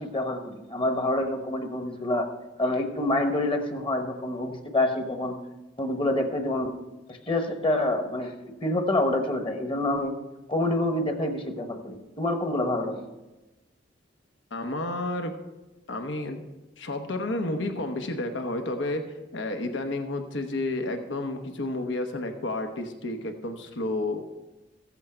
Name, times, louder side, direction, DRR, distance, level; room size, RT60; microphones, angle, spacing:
voice 1, 0.0-2.3 2.6-5.4 5.8-6.7 7.1-8.3 8.6-10.2 10.5-13.0, left 1 dB, 30° left, 5 dB, 1.1 m, -27 dB
voice 2, 14.5-15.4 15.9-16.4 16.8-24.2, left 2 dB, 85° left, 5 dB, 1.0 m, -31 dB
14.5 x 8.2 x 4.4 m, 1.1 s
head